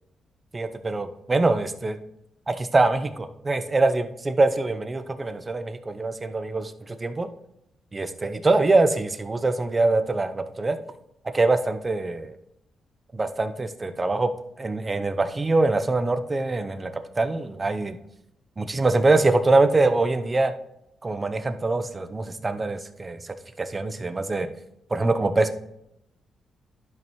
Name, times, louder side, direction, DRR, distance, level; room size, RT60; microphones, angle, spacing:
voice 1, 0.5-2.0 2.5-7.3 7.9-10.8 11.3-12.4 13.1-14.3 14.6-16.9 17.2-18.0 18.6-20.5 21.0-24.5 24.9-25.5, right 2 dB, 25° right, 9 dB, 0.7 m, -24 dB
12.0 x 5.3 x 3.1 m, 0.79 s
cardioid pair, 90°, 0 cm